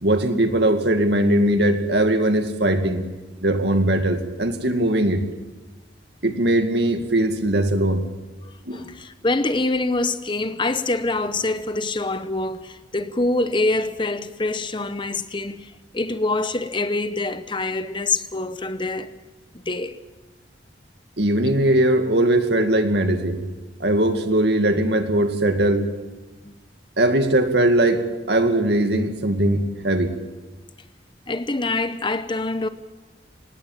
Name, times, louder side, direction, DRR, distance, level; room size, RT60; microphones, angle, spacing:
voice 1, 0.0-3.1 3.4-5.2 6.2-8.1 8.7-8.8 21.2-23.4 23.8-25.9 27.0-30.1, right 1 dB, 60° right, 2.2 m, -20 dB
voice 2, 8.4-19.1 19.7-20.0 26.4-26.6 31.3-32.7, left 2 dB, 25° left, 0.8 m, -25 dB
25.0 x 19.5 x 7.4 m
head